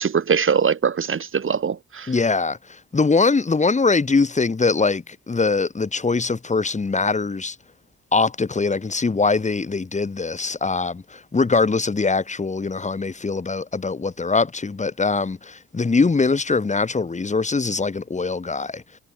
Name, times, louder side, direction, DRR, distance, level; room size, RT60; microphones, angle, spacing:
voice 1, 0.0-2.1, right 6 dB, 40° right, 4.5 m, -22 dB
voice 2, 2.1-7.6 8.1-18.8, left 4 dB, 25° left, 2.4 m, -22 dB
cardioid pair, 90°, 30 cm